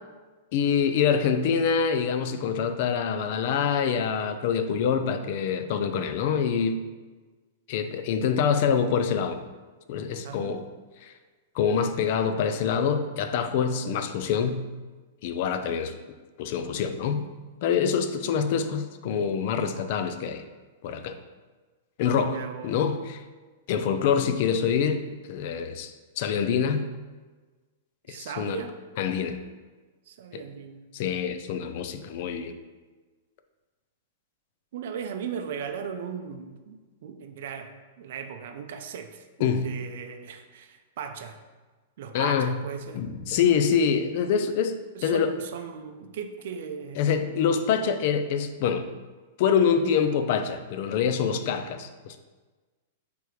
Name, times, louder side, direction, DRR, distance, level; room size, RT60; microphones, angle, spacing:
voice 1, 0.5-6.8 7.7-9.4 9.9-10.7 11.0-11.1 11.5-14.7 15.2-15.9 16.4-17.2 17.6-20.4 20.8-21.2 22.0-23.2 23.7-25.0 25.3-26.9 28.1-28.6 29.0-29.4 30.9-32.5 39.4-39.7 42.1-42.6 42.9-44.8 45.0-45.3 47.0-48.9 49.4-52.2, left 7 dB, 40° left, 8 dB, 0.4 m, -25 dB
voice 2, 10.2-10.6 22.1-22.8 28.1-28.7 30.1-30.8 34.7-37.7 38.0-41.4 42.0-43.0 44.9-47.3, right 7 dB, 55° right, 6 dB, 0.5 m, -38 dB
8.9 x 3.4 x 3.2 m, 1.3 s
supercardioid pair, 175°, 0 cm